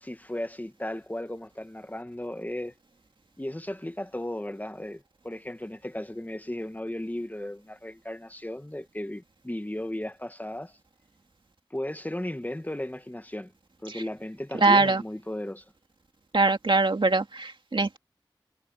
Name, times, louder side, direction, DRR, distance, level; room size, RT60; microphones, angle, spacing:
voice 1, 0.0-2.7 3.4-10.7 11.7-13.5 13.8-15.6, left 1 dB, 20° left, 1.5 m, -35 dB
voice 2, 14.6-15.0 16.3-18.0, right 3 dB, 80° right, 2.4 m, -22 dB
wide cardioid pair, 55°, 8 cm